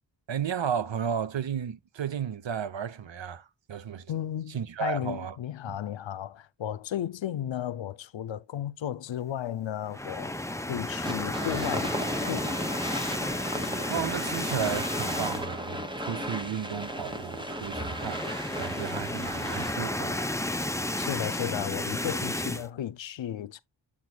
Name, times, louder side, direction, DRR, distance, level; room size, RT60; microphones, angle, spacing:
voice 1, 0.3-4.1 4.5-5.4 5.7-5.8 13.9-20.2, right 8 dB, 80° right, 0.8 m, -33 dB
voice 2, 4.1-10.4 10.7-12.6 21.0-23.6, left 11 dB, 85° left, 0.6 m, -34 dB
sound 1, 9.9-15.7 16.0-16.2 16.5-16.6 17.6-22.7, left 1 dB, 5° left, 0.6 m, -32 dB
sound 2, 11.1-20.0, equal, 10° right, 1.1 m, -35 dB
7.5 x 6.3 x 2.2 m
wide cardioid pair, 60°, 44 cm